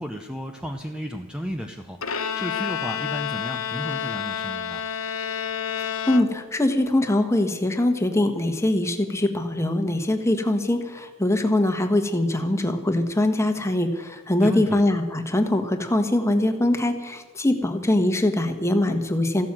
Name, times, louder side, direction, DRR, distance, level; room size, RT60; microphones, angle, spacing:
voice 1, 0.0-2.0 2.3-4.8 14.4-14.8, equal, 5° right, 4 dB, 0.7 m, -33 dB
Bowed string instrument, 2.0-6.7, left 8 dB, 80° left, 1.2 m, -29 dB
voice 2, 6.1-19.5, left 1 dB, 15° left, 6 dB, 1.4 m, -22 dB
14.5 x 12.5 x 7.6 m, 1.2 s
head